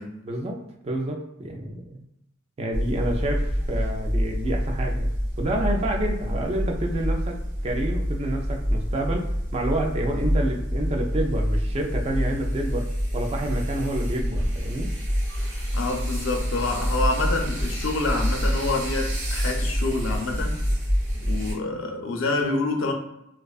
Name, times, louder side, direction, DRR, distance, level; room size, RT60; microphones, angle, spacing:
voice 1, 0.2-2.0 2.6-5.1 5.4-12.9 13.1-14.9, right 1 dB, 30° right, 1 dB, 0.3 m, -29 dB
sound 1, 2.7-21.5, equal, 75° right, 1.1 m, -27 dB
voice 2, 15.7-20.6 21.3-22.9, left 3 dB, 75° left, 3 dB, 0.5 m, -27 dB
2.4 x 2.2 x 2.3 m, 0.84 s
head